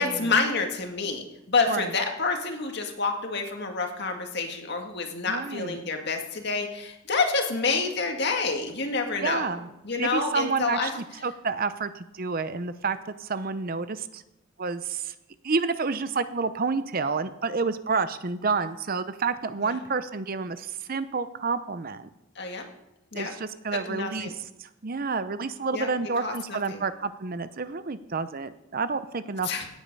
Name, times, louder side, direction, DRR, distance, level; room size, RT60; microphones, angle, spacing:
voice 1, 0.0-10.9 19.6-19.8 22.4-22.7 23.1-23.4 23.9-24.3 25.7-25.9 26.2-26.8 29.4-29.7, left 4 dB, 50° left, 4 dB, 1.9 m, -28 dB
voice 2, 5.3-5.8 9.2-9.7 10.0-14.2 14.6-15.1 15.4-22.1 23.1-24.3 24.6-29.5, right 4 dB, 45° right, 12 dB, 0.6 m, -29 dB
17.0 x 9.0 x 5.4 m, 0.89 s
head